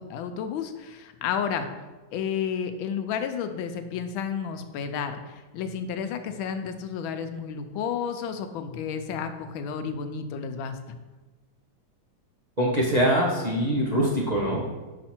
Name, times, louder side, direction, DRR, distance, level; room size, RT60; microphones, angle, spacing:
voice 1, 0.0-1.7 2.1-10.8, left 7 dB, 90° left, 8 dB, 1.4 m, -31 dB
voice 2, 12.6-14.7, equal, 30° right, -5 dB, 0.8 m, -23 dB
6.3 x 4.9 x 4.3 m, 1.2 s
omnidirectional pair, 2.1 m